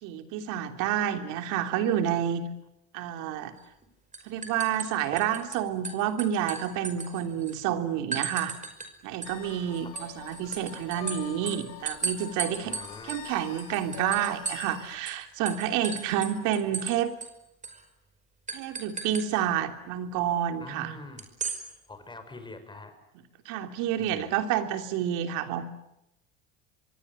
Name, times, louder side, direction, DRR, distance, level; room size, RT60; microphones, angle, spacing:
voice 1, 0.0-2.5 2.9-3.5 4.2-8.5 9.0-12.7 13.0-17.1 18.5-20.9 23.4-25.6, right 10 dB, 70° right, 7 dB, 3.2 m, -29 dB
sound 1, 3.6-3.8 4.1-5.6 5.8-7.6 8.1-8.9 9.2-14.8 15.1-15.2 15.5-16.9 17.2-17.3 17.6-17.8 18.5-19.3 21.2-21.6, right 5 dB, 20° right, 5.3 m, -36 dB
sound 2, 9.2-15.0, left 12 dB, 70° left, 3.7 m, -45 dB
voice 2, 12.6-13.2 20.6-21.3 21.9-22.9 24.0-24.3, left 2 dB, 15° left, 9 dB, 6.1 m, -44 dB
26.0 x 23.0 x 9.7 m, 0.85 s
supercardioid pair, 100°, 32 cm